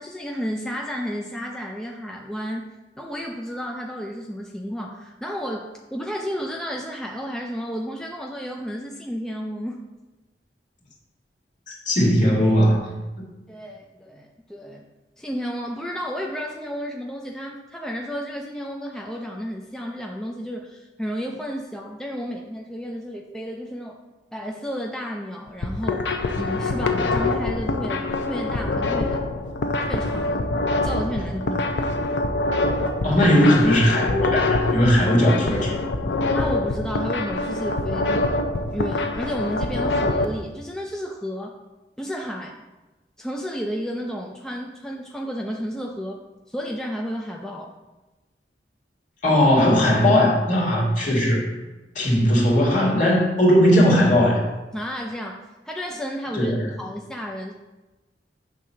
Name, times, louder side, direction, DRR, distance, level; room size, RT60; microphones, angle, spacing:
voice 1, 0.0-2.6 3.0-9.8 13.5-14.8 15.2-24.0 24.3-26.1 26.4-29.2 29.9-30.5 30.8-31.7 36.3-38.4 38.7-41.6 42.0-42.6 43.2-46.2 46.5-47.7 54.7-57.5, equal, 5° left, 0 dB, 0.5 m, -32 dB
voice 2, 11.7-12.8 33.0-35.7 49.2-51.5 51.9-54.4 56.3-56.7, equal, 45° left, -4 dB, 2.2 m, -18 dB
sound 1, 25.5-40.2, left 2 dB, 75° left, 0.6 m, -25 dB
7.9 x 3.7 x 5.7 m, 1.1 s
head